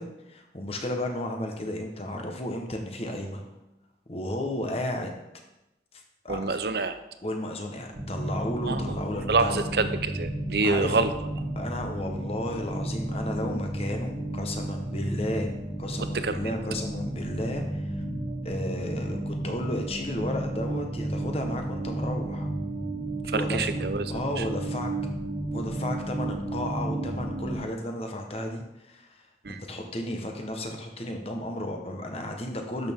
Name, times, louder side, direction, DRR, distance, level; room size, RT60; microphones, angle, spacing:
voice 1, 0.0-3.4 4.1-5.2 6.2-6.4 7.2-9.7 10.6-11.0 11.6-15.5 15.8-18.0 18.4-22.5 23.3-23.6 24.1-24.9 25.5-32.9, left 1 dB, 35° left, 3 dB, 1.1 m, -33 dB
voice 2, 6.3-7.0 8.7-8.8 9.3-11.1 16.1-16.4 23.3-24.1 24.4-24.5 29.4-29.6, right 3 dB, 65° right, 10 dB, 0.7 m, -26 dB
sound 1, 7.9-27.6, right 1 dB, 80° right, 2.1 m, -32 dB
12.0 x 6.5 x 3.6 m, 0.94 s
head